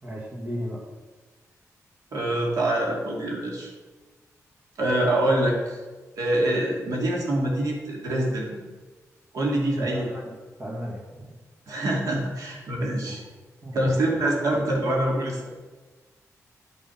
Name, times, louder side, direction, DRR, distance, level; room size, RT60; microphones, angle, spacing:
voice 1, 0.0-0.8 9.8-11.4 13.1-13.2 13.6-14.0, equal, 25° right, -2 dB, 2.0 m, -35 dB
voice 2, 2.1-3.7 4.8-5.8 6.2-8.5 9.3-10.1 11.7-13.2 13.7-15.5, right 1 dB, 85° right, -1 dB, 2.5 m, -25 dB
11.0 x 6.5 x 5.8 m, 1.3 s
wide cardioid pair, 175°, 6 cm